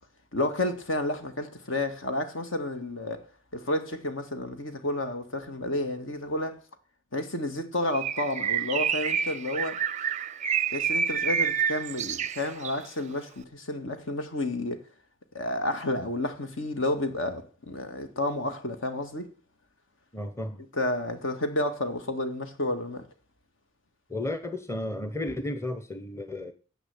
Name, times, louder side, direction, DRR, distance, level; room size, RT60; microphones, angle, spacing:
voice 1, 0.3-3.2 3.5-6.6 7.1-9.8 10.7-14.8 15.3-19.3 20.7-23.1, left 1 dB, 65° left, 2.0 m, -31 dB
Bird, 7.9-12.9, right 7 dB, 35° right, 0.5 m, -28 dB
voice 2, 20.1-20.6 24.1-26.5, left 1 dB, 15° left, 1.0 m, -33 dB
10.5 x 8.3 x 8.0 m
head